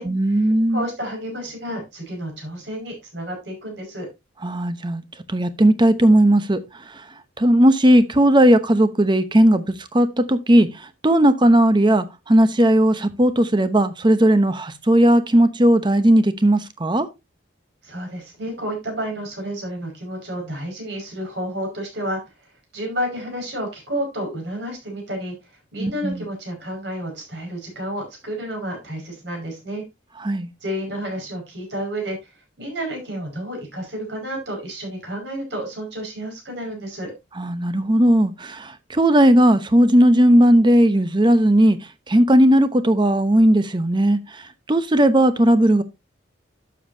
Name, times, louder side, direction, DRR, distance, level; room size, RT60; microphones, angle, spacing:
voice 1, 0.0-0.9 4.4-5.0 5.3-6.6 6.9-7.0 7.4-17.1 25.8-26.2 30.2-30.5 37.4-41.8 42.1-45.8, right 1 dB, 25° right, 0.8 m, -17 dB
voice 2, 0.7-4.1 17.8-22.2 22.7-25.3 25.7-29.8 30.6-32.3 32.6-37.1, equal, 60° right, 5.4 m, -30 dB
11.5 x 7.3 x 2.7 m
head